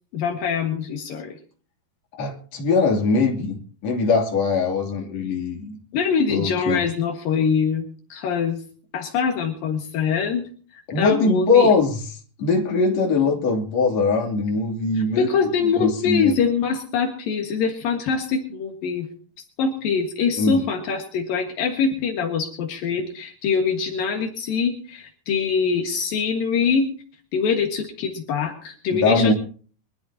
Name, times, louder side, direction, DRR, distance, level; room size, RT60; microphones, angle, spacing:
voice 1, 0.1-1.4 5.9-8.6 8.9-11.7 15.0-19.1 19.6-26.9 27.3-29.3, left 5 dB, 75° left, 3 dB, 3.4 m, -24 dB
voice 2, 2.1-5.8 6.3-6.8 10.9-12.0 12.4-15.3 15.8-16.3 20.4-20.6 29.0-29.3, left 4 dB, 50° left, 0 dB, 3.9 m, -21 dB
24.0 x 13.5 x 2.9 m, 0.42 s
omnidirectional pair, 4.1 m